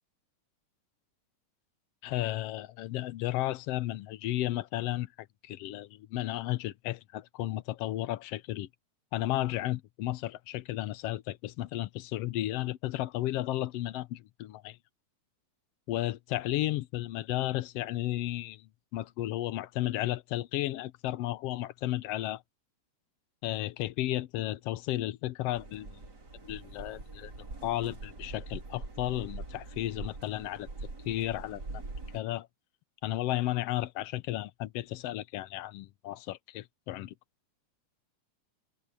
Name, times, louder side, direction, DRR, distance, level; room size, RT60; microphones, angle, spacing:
voice 1, 2.0-5.1 5.4-8.7 9.1-14.8 15.9-22.4 23.4-25.9 26.5-27.3 27.6-30.7 31.0-31.8 32.1-32.5 33.0-37.1, left 15 dB, 70° left, 1.6 m, -33 dB
sound 1, 25.5-32.2, right 3 dB, 35° right, 3.7 m, -43 dB
omnidirectional pair, 3.4 m